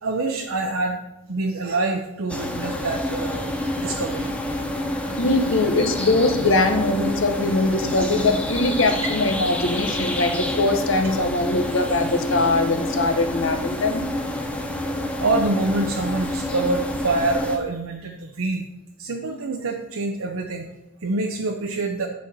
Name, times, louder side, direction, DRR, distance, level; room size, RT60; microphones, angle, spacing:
voice 1, 0.0-1.0 1.3-4.9 15.2-18.7 19.0-20.7 21.0-22.1, right 2 dB, 85° right, 2 dB, 0.8 m, -26 dB
sound 1, 2.3-17.6, left 1 dB, 5° left, 0.7 m, -28 dB
voice 2, 5.2-14.1, left 2 dB, 70° left, 6 dB, 1.0 m, -22 dB
9.5 x 4.3 x 7.3 m, 1.0 s
head